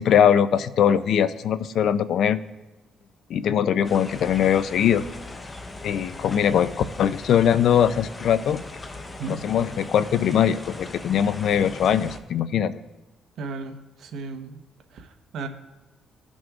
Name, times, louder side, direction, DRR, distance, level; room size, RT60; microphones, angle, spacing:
voice 1, 0.0-2.4 3.3-5.0 5.8-6.7 7.0-8.6 9.3-12.7, left 9 dB, 70° left, 14 dB, 0.4 m, -21 dB
sound 1, 3.8-12.2, left 2 dB, 25° left, 0.8 m, -39 dB
voice 2, 13.4-14.5 14.9-15.5, right 4 dB, 75° right, 6 dB, 0.9 m, -35 dB
17.5 x 6.1 x 2.4 m, 1.1 s
cardioid pair, 90°, 0 cm